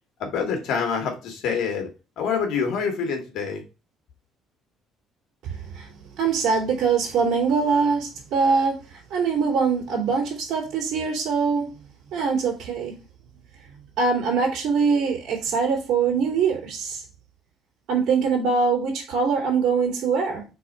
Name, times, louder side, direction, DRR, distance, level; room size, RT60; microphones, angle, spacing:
voice 1, 0.2-1.9 2.2-3.6, left 6 dB, 65° left, 2.0 m, -26 dB
voice 2, 5.4-11.9 12.1-13.0 13.7-17.0 17.9-20.5, right 5 dB, 65° right, 2.6 m, -23 dB
4.6 x 4.1 x 5.5 m
cardioid pair, 135°, 0 cm